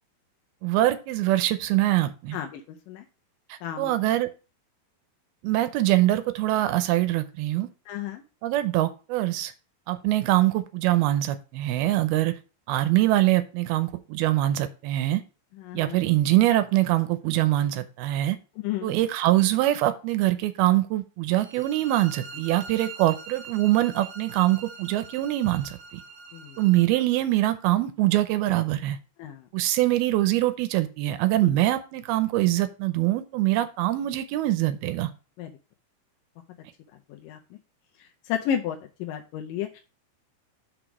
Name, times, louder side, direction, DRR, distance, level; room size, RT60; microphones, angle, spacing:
voice 1, 0.6-2.4 3.8-4.3 5.4-7.7 8.4-9.5 9.9-12.3 12.7-15.2 15.7-18.4 18.8-25.8 26.6-29.0 29.5-35.1, right 15 dB, 80° right, 11 dB, 2.6 m, -23 dB
voice 2, 7.9-8.2 15.6-16.0 18.6-18.9 26.3-26.6 29.2-29.4 31.4-31.5 35.4-35.5 37.1-37.4 38.3-39.8, left 9 dB, 75° left, 3 dB, 2.1 m, -32 dB
sound 1, 21.4-27.2, right 5 dB, 60° right, 3.0 m, -43 dB
6.2 x 5.0 x 6.1 m, 0.33 s
omnidirectional pair, 4.4 m